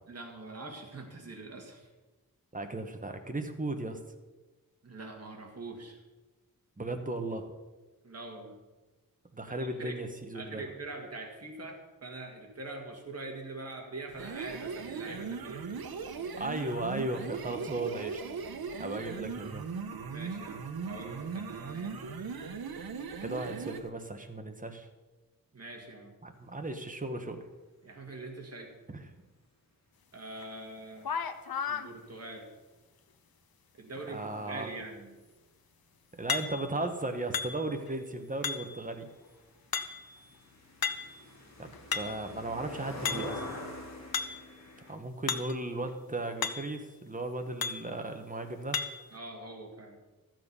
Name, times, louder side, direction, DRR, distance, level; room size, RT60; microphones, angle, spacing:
voice 1, 0.1-1.9 4.8-6.0 8.0-8.6 9.5-10.0 10.3-15.6 20.0-22.0 25.5-26.1 27.8-28.7 30.1-31.1 31.7-32.5 33.7-35.2 49.1-50.0, right 2 dB, 45° right, 1 dB, 2.0 m, -43 dB
voice 2, 2.5-4.0 6.8-7.5 9.3-10.6 16.4-18.2 18.8-19.7 23.2-24.9 26.2-27.4 28.9-29.0 34.1-34.7 36.1-39.1 41.6-43.4 44.9-48.8, right 2 dB, 20° right, 6 dB, 1.1 m, -36 dB
sound 1, 14.1-23.9, right 5 dB, 80° right, 0.9 m, -39 dB
sound 2, 30.4-30.5 31.0-31.9 36.3-36.8 37.3-37.9 38.4-38.9 39.7-40.2 40.8-41.2 41.7-42.3 43.1-43.5 44.1-44.5 45.3-45.6 45.9-46.0 46.4-46.8 47.6-47.9 48.7-49.1, left 6 dB, 75° left, 0.8 m, -34 dB
sound 3, 36.9-37.0 37.2-44.9, left 1 dB, 50° left, 2.1 m, -45 dB
13.5 x 7.6 x 5.5 m, 1.2 s
wide cardioid pair, 125°, 36 cm